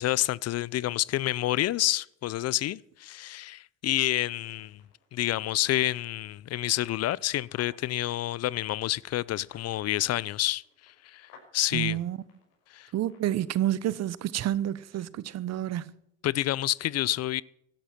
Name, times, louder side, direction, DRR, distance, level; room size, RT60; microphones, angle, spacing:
voice 1, 0.0-4.8 5.1-12.0 12.7-12.9 16.2-17.4, left 14 dB, 50° left, 0.6 m, -29 dB
sound 1, 4.4-13.5, left 5 dB, 80° left, 5.9 m, -60 dB
voice 2, 11.7-12.2 12.9-15.9, right 12 dB, 55° right, 0.9 m, -29 dB
15.5 x 11.5 x 5.9 m
supercardioid pair, 80°, 31 cm